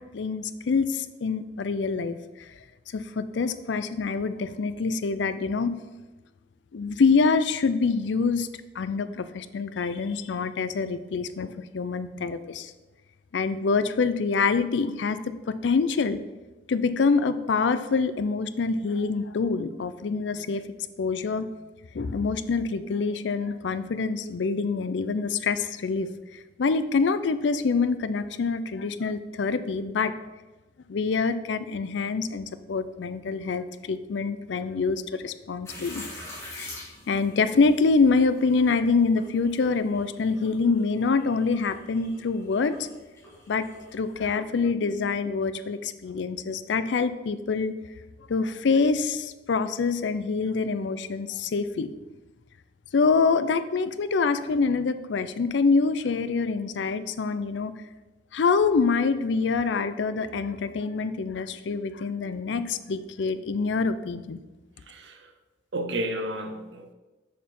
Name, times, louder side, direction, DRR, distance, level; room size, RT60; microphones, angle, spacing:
voice 1, 0.1-2.2 2.9-5.7 6.7-8.5 8.8-12.7 13.3-15.2 15.5-16.2 16.7-20.6 21.0-21.5 21.9-26.1 26.6-30.1 30.9-36.0 36.5-42.8 43.5-43.7 43.9-47.7 48.3-51.9 52.9-57.7 58.3-64.4, left 4 dB, 80° left, 0.4 m, -25 dB
sound 1, 35.7-44.3, left 1 dB, 15° left, 1.9 m, -46 dB
voice 2, 64.9-65.3 65.7-66.9, right 1 dB, 80° right, 0.8 m, -32 dB
6.4 x 4.6 x 5.3 m
head